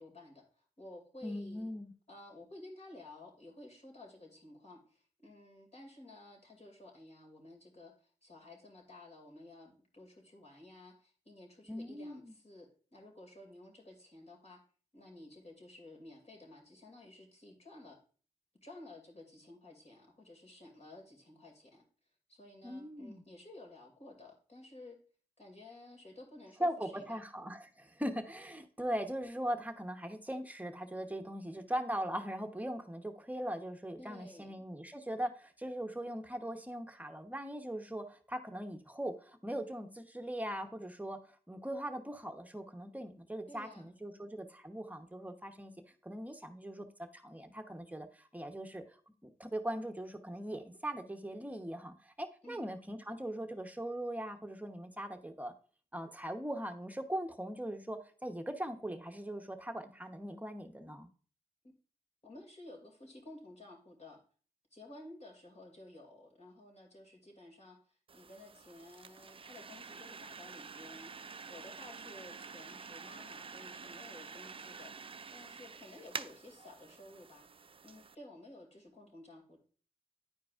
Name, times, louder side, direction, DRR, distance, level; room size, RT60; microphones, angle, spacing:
voice 1, 0.0-1.7 2.1-14.6 14.9-18.0 18.6-21.8 22.3-25.0 25.4-27.2 34.0-34.6 43.5-43.9 52.4-52.7 62.2-64.2 64.7-79.6, left 2 dB, 45° left, 0 dB, 2.5 m, -54 dB
voice 2, 1.2-1.9 11.7-12.3 22.6-23.2 26.6-41.2 41.5-45.7 46.0-48.8 49.2-55.5 55.9-61.1, right 1 dB, 10° right, 6 dB, 1.0 m, -40 dB
sound 1, 68.1-78.2, right 5 dB, 35° right, 0.4 m, -48 dB
9.9 x 4.7 x 2.5 m, 0.41 s
cardioid pair, 40°, 16 cm